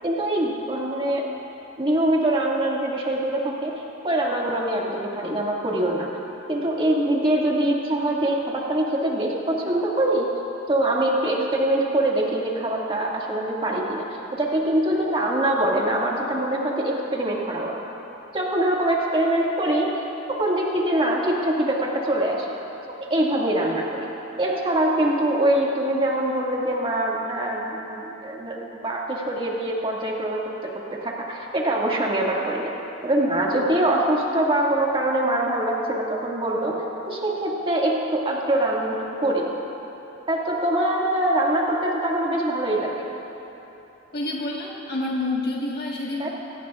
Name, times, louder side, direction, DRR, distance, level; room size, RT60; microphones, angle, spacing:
voice 1, 0.0-1.3 1.8-3.7 4.0-6.1 6.5-10.3 10.7-14.0 14.3-17.8 18.3-19.9 20.3-22.5 23.1-24.1 24.4-32.7 33.0-36.8 37.1-39.5 40.3-43.0 46.2-46.3, right 1 dB, 25° right, -3 dB, 2.1 m, -23 dB
voice 2, 44.1-46.3, left 2 dB, 50° left, -3 dB, 1.6 m, -28 dB
25.5 x 17.5 x 2.5 m, 3.0 s
head